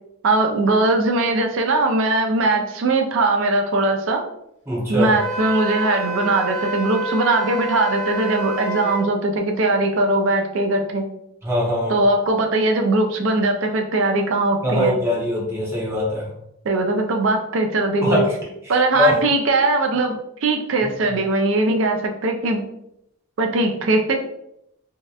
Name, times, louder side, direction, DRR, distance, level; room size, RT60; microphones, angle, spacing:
voice 1, 0.2-4.2 4.9-11.0 11.9-15.0 16.7-18.2 18.7-22.7 23.4-24.2, right 2 dB, 65° right, 4 dB, 0.4 m, -20 dB
voice 2, 4.7-5.2 11.4-12.0 14.6-16.3 18.0-18.3 18.6-19.2 20.8-20.9, left 1 dB, 10° right, -5 dB, 0.6 m, -22 dB
Wind instrument woodwind instrument, 5.1-9.1, right 2 dB, 30° left, 0.8 m, -28 dB
2.7 x 2.1 x 2.3 m, 0.77 s
head